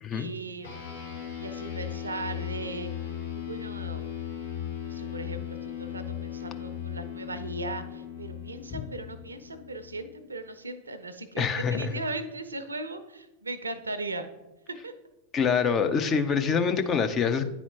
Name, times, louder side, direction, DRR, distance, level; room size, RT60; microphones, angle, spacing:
voice 1, 0.1-0.8 1.4-4.0 4.8-14.3 14.8-14.9, right 2 dB, 75° right, 11 dB, 0.5 m, -38 dB
sound 1, 0.6-10.4, left 9 dB, 75° left, 1.6 m, -37 dB
voice 2, 11.4-11.9 15.3-17.5, left 6 dB, 25° left, 7 dB, 0.5 m, -25 dB
9.9 x 4.2 x 2.9 m, 1.0 s
figure-of-eight pair, 90°, 0 cm